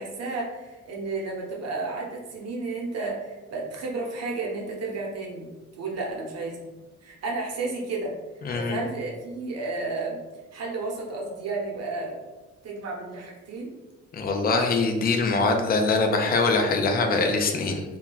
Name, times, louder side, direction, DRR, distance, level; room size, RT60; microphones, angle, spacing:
voice 1, 0.0-5.5 5.7-6.7 7.0-8.1 8.5-10.2 10.5-12.2 12.6-13.7, right 3 dB, 55° right, -2 dB, 0.8 m, -32 dB
voice 2, 8.4-8.8 14.1-17.8, left 3 dB, 30° left, 3 dB, 0.5 m, -23 dB
2.3 x 2.2 x 3.8 m, 1.2 s
cardioid pair, 90°, 30 cm